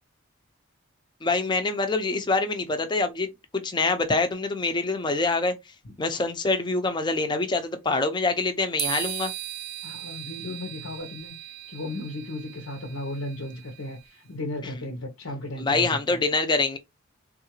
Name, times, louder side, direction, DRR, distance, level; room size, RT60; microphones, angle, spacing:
voice 1, 1.2-5.5 6.0-9.3 15.6-16.8, left 3 dB, 20° left, 0.5 m, -25 dB
sound 1, 8.8-14.1, right 13 dB, 70° right, 0.4 m, -37 dB
voice 2, 9.8-16.2, left 1 dB, 85° left, 0.8 m, -35 dB
3.5 x 2.4 x 2.9 m
head